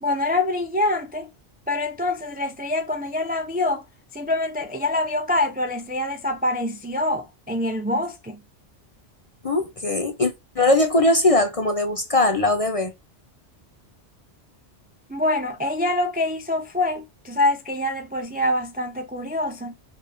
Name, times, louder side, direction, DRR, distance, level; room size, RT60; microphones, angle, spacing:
voice 1, 0.0-1.3 1.7-3.8 4.1-8.4 15.1-19.7, left 2 dB, 15° right, 0.3 m, -25 dB
voice 2, 9.4-12.9, left 2 dB, 40° left, 0.5 m, -20 dB
5.1 x 2.7 x 3.4 m
omnidirectional pair, 1.2 m